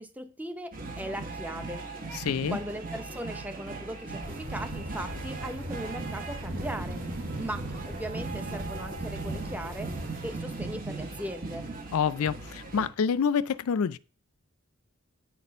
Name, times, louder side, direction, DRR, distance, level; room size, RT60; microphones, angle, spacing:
voice 1, 0.0-1.8 2.2-10.0 10.2-11.7, right 1 dB, 5° right, 0.7 m, -39 dB
sound 1, 0.7-12.9, right 3 dB, 40° right, 1.4 m, -38 dB
voice 2, 2.1-2.6 11.9-14.0, left 6 dB, 75° left, 0.4 m, -27 dB
sound 2, 4.2-10.4, equal, 60° right, 2.5 m, -40 dB
9.3 x 4.2 x 5.3 m
head